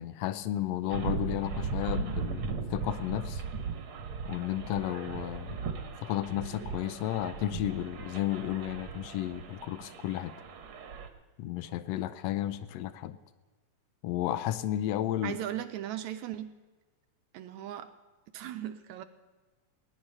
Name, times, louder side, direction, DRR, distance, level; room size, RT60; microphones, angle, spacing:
voice 1, 0.0-3.4 4.2-5.6 6.0-10.3 11.4-13.2 14.0-15.4, left 13 dB, 85° left, 13 dB, 1.5 m, -33 dB
sound 1, 0.9-11.1, right 5 dB, 55° right, 1.6 m, -37 dB
voice 2, 15.2-16.5 17.3-17.9 18.3-19.0, right 11 dB, 80° right, 9 dB, 1.8 m, -37 dB
19.5 x 10.5 x 5.5 m, 1.3 s
omnidirectional pair, 3.7 m